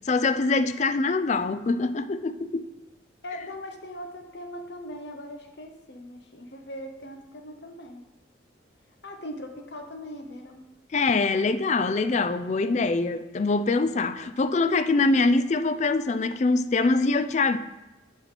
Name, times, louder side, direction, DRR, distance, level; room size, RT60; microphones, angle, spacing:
voice 1, 0.1-2.7 10.9-17.6, left 3 dB, 35° left, 0.4 m, -24 dB
voice 2, 3.2-8.0 9.0-10.6, left 1 dB, 60° left, 1.1 m, -40 dB
5.8 x 5.6 x 6.7 m
head